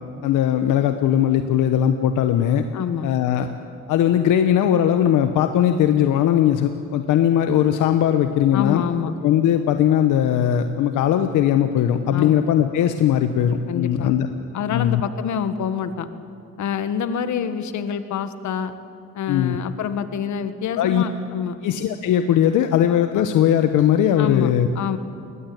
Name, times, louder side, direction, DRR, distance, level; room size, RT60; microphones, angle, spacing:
voice 1, 0.2-2.7 3.0-3.5 3.9-8.8 9.2-14.3 14.7-15.0 19.3-19.6 20.8-21.0 21.6-24.7, left 10 dB, 85° left, 8 dB, 1.1 m, -19 dB
voice 2, 2.7-3.1 8.5-9.1 12.1-12.4 13.7-14.1 14.5-16.1 16.6-18.7 19.1-21.6 24.2-25.0, left 7 dB, 70° left, 10 dB, 1.6 m, -26 dB
20.5 x 20.5 x 9.4 m, 2.4 s
cardioid pair, 90°, 30 cm